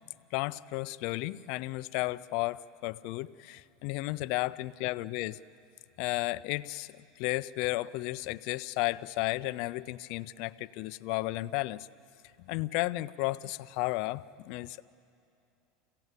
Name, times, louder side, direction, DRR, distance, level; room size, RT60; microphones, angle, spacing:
voice 1, 0.3-5.4 6.0-11.8 12.5-14.8, left 20 dB, 60° left, 15 dB, 0.5 m, -33 dB
26.5 x 16.5 x 8.2 m, 2.6 s
supercardioid pair, 140°, 0 cm